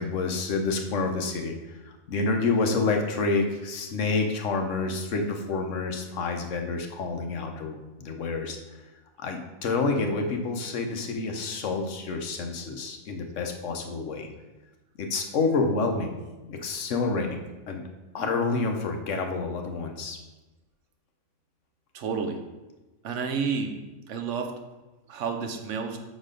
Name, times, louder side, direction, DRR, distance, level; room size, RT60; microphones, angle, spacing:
voice 1, 0.0-8.6 9.2-14.3 15.0-16.1 16.4-17.8 18.1-20.2, left 3 dB, 65° left, 4 dB, 1.1 m, -28 dB
voice 2, 21.9-22.4 23.0-23.8 24.1-24.5 25.1-26.0, right 5 dB, 65° right, 5 dB, 1.0 m, -30 dB
6.3 x 4.1 x 5.1 m, 1.1 s
omnidirectional pair, 1.4 m